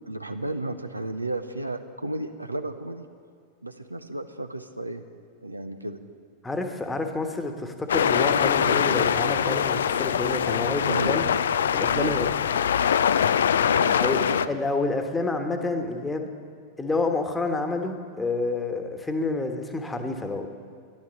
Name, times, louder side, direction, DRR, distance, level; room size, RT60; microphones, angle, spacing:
voice 1, 0.1-3.1 3.6-5.0 5.4-6.0 10.5-11.1 11.9-12.1 13.7-14.5, right 2 dB, 85° right, 9 dB, 0.7 m, -33 dB
voice 2, 6.4-11.3 11.7-12.3 14.0-16.3 16.8-20.5, left 3 dB, 10° left, 5 dB, 1.3 m, -28 dB
sound 1, 7.9-14.5, left 8 dB, 65° left, 0.3 m, -23 dB
13.0 x 11.0 x 7.0 m, 2.1 s
figure-of-eight pair, 90°, 0 cm